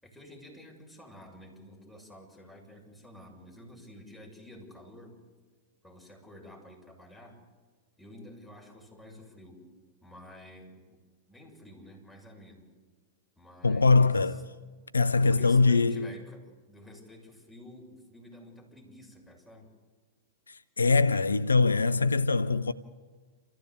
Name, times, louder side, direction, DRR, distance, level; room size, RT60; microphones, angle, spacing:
voice 1, 0.0-5.2 5.8-7.4 8.0-9.6 10.0-11.0 11.3-12.6 13.4-14.2 14.6-14.7 15.2-19.7, left 1 dB, 5° left, 6.5 m, -50 dB
voice 2, 13.6-14.5 14.9-16.1 20.5-22.7, left 3 dB, 80° left, 0.6 m, -23 dB
28.5 x 14.5 x 8.3 m
figure-of-eight pair, 100°, 0 cm